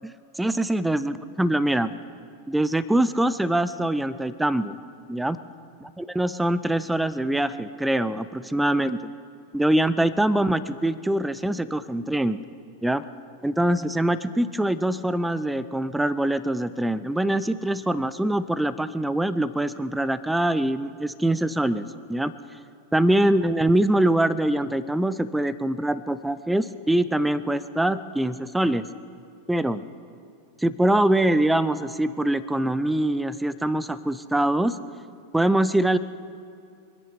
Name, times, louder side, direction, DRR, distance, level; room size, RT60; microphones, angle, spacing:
voice 1, 0.4-1.9 2.5-4.8 5.1-5.4 6.0-9.1 9.5-12.4 12.8-13.0 13.4-22.3 22.9-28.8 29.5-29.8 30.6-34.8 35.3-36.0, right 1 dB, 5° right, 15 dB, 0.6 m, -23 dB
25.0 x 10.0 x 4.4 m, 2.5 s
figure-of-eight pair, 90°, 0 cm